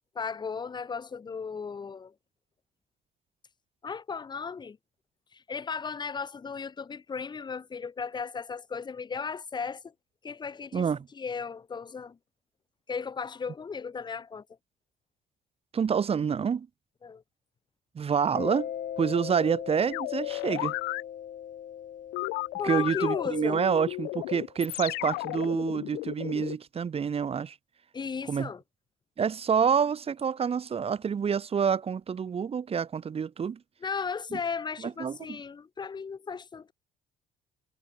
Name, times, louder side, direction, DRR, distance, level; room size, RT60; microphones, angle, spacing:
voice 1, 0.1-2.1 3.8-4.8 5.3-9.9 10.2-10.9 11.1-12.2 12.9-14.4 17.0-17.2 22.6-23.6 27.9-28.6 33.8-36.7, left 5 dB, 25° left, 1.1 m, -35 dB
voice 2, 10.7-11.1 15.7-16.7 18.0-18.7 19.0-20.7 22.6-27.6 28.3-28.5 29.2-33.6 34.3-34.4 34.8-35.4, right 7 dB, 35° right, 2.0 m, -28 dB
Mallet percussion, 18.4-24.7, left 9 dB, 50° left, 2.1 m, -40 dB
sound 1, 19.9-21.0 22.1-26.6, left 24 dB, 90° left, 0.4 m, -34 dB
cardioid pair, 110°, 17 cm